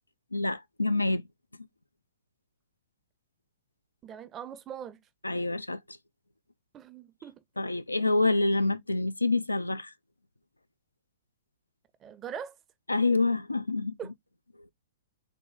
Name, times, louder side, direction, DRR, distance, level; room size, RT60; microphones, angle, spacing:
voice 1, 0.3-1.2 5.2-6.0 7.6-9.9 12.9-14.0, left 2 dB, 80° left, 0.4 m, -27 dB
voice 2, 4.0-5.0 6.7-7.4 12.0-12.5 14.0-14.1, right 8 dB, 20° right, 0.5 m, -41 dB
3.7 x 3.4 x 3.6 m
figure-of-eight pair, 115°, 0 cm